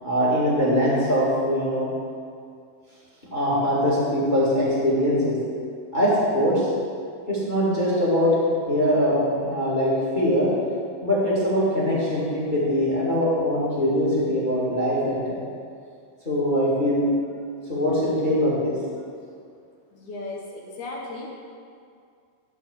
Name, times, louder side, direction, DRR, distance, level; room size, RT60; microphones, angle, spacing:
voice 1, 0.0-1.9 3.3-5.3 5.9-6.6 7.3-8.3 8.7-10.5 11.0-15.2 16.2-17.1 17.7-18.7, equal, 15° left, -7 dB, 1.6 m, -22 dB
voice 2, 19.9-21.3, left 2 dB, 65° left, -2 dB, 2.2 m, -35 dB
12.5 x 4.2 x 7.1 m, 2.3 s
omnidirectional pair, 4.3 m